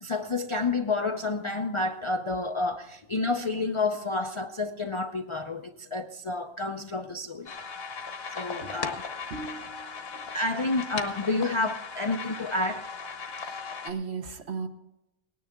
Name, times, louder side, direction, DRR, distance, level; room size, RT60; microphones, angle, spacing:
voice 1, 0.0-7.5 8.3-9.1 10.3-12.9, left 3 dB, 45° left, 0.4 m, -29 dB
sound 1, 7.5-13.9, left 5 dB, 60° left, 1.3 m, -38 dB
voice 2, 9.3-10.3 13.3-14.7, right 5 dB, 65° right, 1.3 m, -38 dB
18.5 x 10.0 x 3.6 m
omnidirectional pair, 1.2 m